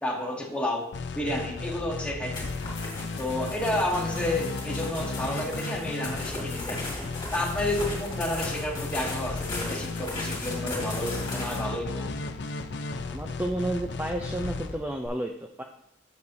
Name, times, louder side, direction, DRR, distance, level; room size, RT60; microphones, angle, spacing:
voice 1, 0.0-0.9 1.1-2.6 3.2-6.8 7.3-12.1, left 1 dB, 5° left, -1 dB, 1.1 m, -31 dB
sound 1, 0.9-15.1, left 3 dB, 65° left, 0.5 m, -35 dB
sound 2, 2.3-11.6, left 2 dB, 25° left, 2.5 m, -38 dB
voice 2, 13.1-15.6, right 1 dB, 10° right, 3 dB, 0.4 m, -31 dB
8.2 x 6.7 x 2.6 m, 0.79 s
head